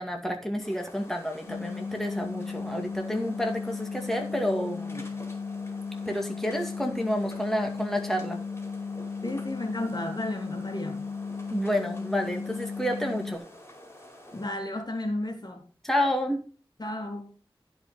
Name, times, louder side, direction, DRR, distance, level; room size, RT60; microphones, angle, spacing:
voice 1, 0.0-5.0 6.1-8.4 11.5-13.4 15.8-16.4, equal, 5° left, 2.3 m, -29 dB
sound 1, 0.6-14.5, left 1 dB, 25° left, 5.0 m, -48 dB
sound 2, 1.5-13.4, left 5 dB, 75° left, 0.8 m, -36 dB
voice 2, 9.2-11.1 14.3-15.6 16.8-17.3, left 1 dB, 45° left, 3.3 m, -33 dB
16.0 x 5.6 x 4.3 m
wide cardioid pair, 45°, 10 cm